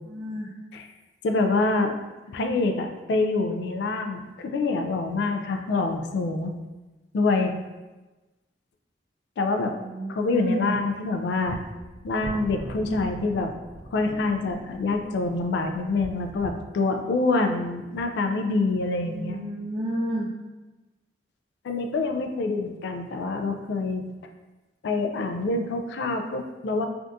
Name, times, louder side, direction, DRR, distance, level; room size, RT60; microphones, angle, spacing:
voice 1, 0.1-0.5 9.7-10.8 19.0-20.3, right 1 dB, 25° right, -5 dB, 0.3 m, -31 dB
voice 2, 1.2-1.9 2.3-6.6 7.1-7.6 9.4-9.7 10.1-11.6 12.0-13.5 13.9-19.4 21.6-24.1 24.8-26.9, left 3 dB, 65° left, 5 dB, 0.3 m, -26 dB
sound 1, 11.4-16.6, equal, 80° right, 0.7 m, -42 dB
3.4 x 2.4 x 2.6 m, 1.1 s
head